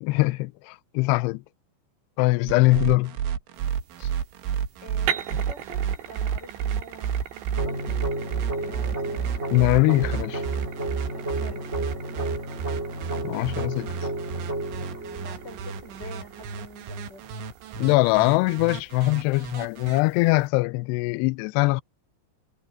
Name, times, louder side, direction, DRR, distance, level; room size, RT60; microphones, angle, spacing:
voice 1, 0.0-1.4 2.2-3.1 4.0-4.1 9.5-10.4 13.2-13.9 17.8-21.8, left 22 dB, 85° left, 2.4 m, -22 dB
sound 1, 2.5-20.0, right 7 dB, 90° right, 4.5 m, -31 dB
voice 2, 2.6-3.0 4.0-4.1 4.8-8.3 8.6-9.3 11.1-11.6 12.1-12.4 15.2-17.2, equal, 25° left, 4.6 m, -46 dB
sound 2, 3.5-20.5, right 9 dB, 70° right, 4.2 m, -41 dB
sound 3, 7.6-16.5, right 2 dB, 15° right, 3.3 m, -33 dB
omnidirectional pair, 5.2 m